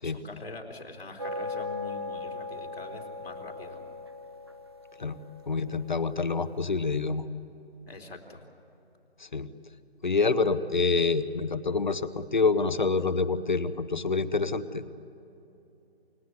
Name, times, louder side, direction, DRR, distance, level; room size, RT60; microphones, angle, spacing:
voice 1, 0.0-3.9 7.9-8.4, left 2 dB, 65° left, 3 dB, 3.7 m, -44 dB
sound 1, 1.2-6.7, left 3 dB, 25° right, 0.7 m, -39 dB
voice 2, 5.5-7.3 9.2-9.5 10.0-14.9, left 4 dB, 45° left, 14 dB, 0.9 m, -27 dB
29.0 x 17.5 x 9.5 m, 2.9 s
figure-of-eight pair, 170°, 32 cm